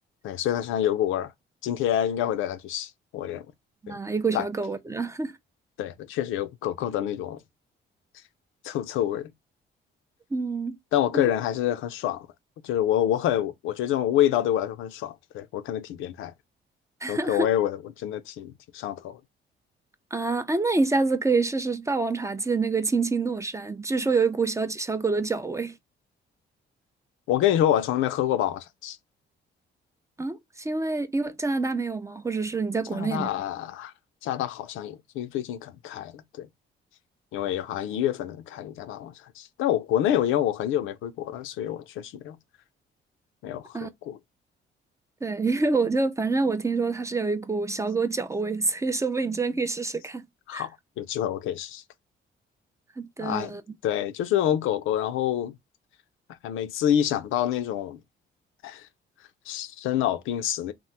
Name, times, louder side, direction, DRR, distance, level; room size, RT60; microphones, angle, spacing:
voice 1, 0.2-1.3 1.6-3.5 3.9-4.0 4.3-4.5 5.8-7.4 8.6-9.3 10.9-12.3 12.6-16.3 17.1-19.2 27.3-29.0 32.9-33.9 34.2-36.5 37.3-42.4 43.4-44.2 50.5-51.8 53.2-53.5 53.8-55.6 56.4-58.0 58.6-58.9 59.5-60.7, left 11 dB, 85° left, 0.4 m, -27 dB
voice 2, 3.8-5.3 10.3-10.8 11.1-11.3 17.0-17.5 20.1-25.7 30.2-33.3 43.7-43.9 45.2-50.2 50.5-50.7 53.0-53.6, right 3 dB, 15° right, 0.3 m, -27 dB
2.9 x 2.0 x 3.2 m
cardioid pair, 90°, 20 cm